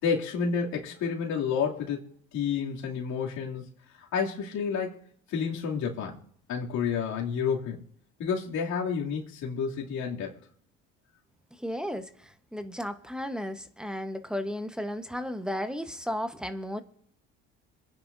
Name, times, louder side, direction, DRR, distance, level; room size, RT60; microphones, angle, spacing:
voice 1, 0.0-3.7 4.0-5.0 5.3-6.2 6.5-7.8 8.2-10.4, left 6 dB, 70° left, 2.7 m, -30 dB
voice 2, 11.5-16.8, equal, 5° right, 1.1 m, -34 dB
26.5 x 9.9 x 2.7 m
supercardioid pair, 75°, 29 cm